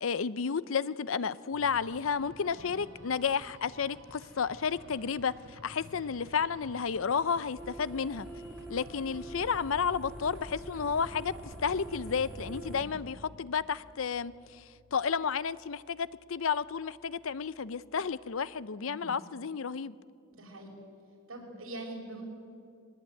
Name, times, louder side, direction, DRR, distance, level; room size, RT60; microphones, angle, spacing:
voice 1, 0.0-8.3 8.7-14.6 14.9-20.0, left 6 dB, 75° left, 17 dB, 0.6 m, -32 dB
sound 1, 1.5-18.6, equal, 65° right, 5.1 m, -54 dB
sound 2, 7.6-12.8, right 1 dB, 5° right, 1.2 m, -45 dB
voice 2, 12.6-12.9 18.8-19.2 20.3-20.7 21.3-22.2, right 1 dB, 85° right, 0 dB, 5.8 m, -44 dB
21.5 x 19.0 x 9.0 m, 2.4 s
head